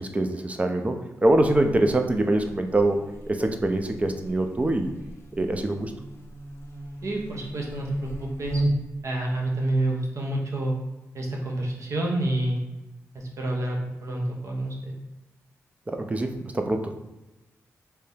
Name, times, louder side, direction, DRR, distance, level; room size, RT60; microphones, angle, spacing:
voice 1, 0.0-4.9 5.4-5.9 15.9-16.9, right 2 dB, 25° right, 5 dB, 0.5 m, -24 dB
Buzz, 1.2-9.0, right 1 dB, 45° left, 0.6 m, -36 dB
voice 2, 7.0-8.6 9.0-10.7 11.1-12.6 13.1-14.9, right 1 dB, 60° right, 0 dB, 0.9 m, -28 dB
3.3 x 2.9 x 3.3 m, 1.0 s
cardioid pair, 70°, 6 cm